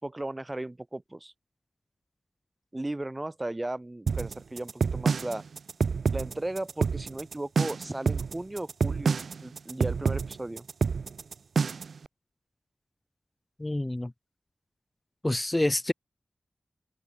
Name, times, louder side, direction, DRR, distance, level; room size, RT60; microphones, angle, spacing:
voice 1, 0.0-1.3 2.7-5.4 6.1-10.7, right 1 dB, 20° right, 5.0 m, -36 dB
sound 1, 4.1-12.0, right 5 dB, 85° right, 2.3 m, -28 dB
voice 2, 13.6-14.1 15.2-15.9, left 1 dB, 15° left, 0.8 m, -27 dB
wide cardioid pair, 105°, 0 cm